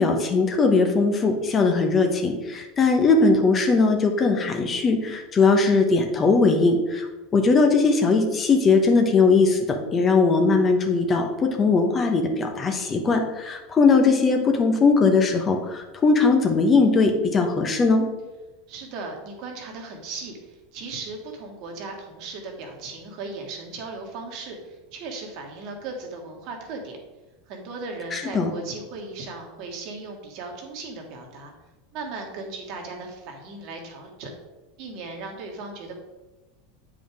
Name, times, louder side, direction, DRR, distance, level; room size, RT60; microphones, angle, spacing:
voice 1, 0.0-7.1 7.3-18.1 28.1-28.5, left 4 dB, 30° left, 4 dB, 1.1 m, -20 dB
voice 2, 18.7-27.0 27.5-31.5 31.9-34.3 34.8-36.0, right 3 dB, 55° right, 2 dB, 1.7 m, -37 dB
8.4 x 5.1 x 3.5 m, 1.1 s
hypercardioid pair, 85°, 0 cm